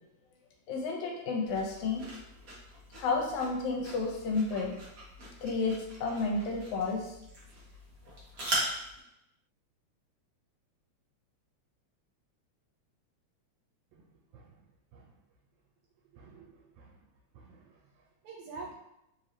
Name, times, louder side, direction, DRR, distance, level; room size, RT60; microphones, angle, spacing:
voice 1, 0.7-2.0 3.0-4.8 5.4-7.1, left 3 dB, 85° left, 0 dB, 2.1 m, -31 dB
sound 1, 1.4-9.0, right 1 dB, 65° right, 0.8 m, -40 dB
voice 2, 14.3-14.6 14.9-15.1 16.1-17.0 17.3-18.7, right 4 dB, 80° right, -2 dB, 1.8 m, -49 dB
4.5 x 2.7 x 3.1 m, 0.85 s
omnidirectional pair, 3.3 m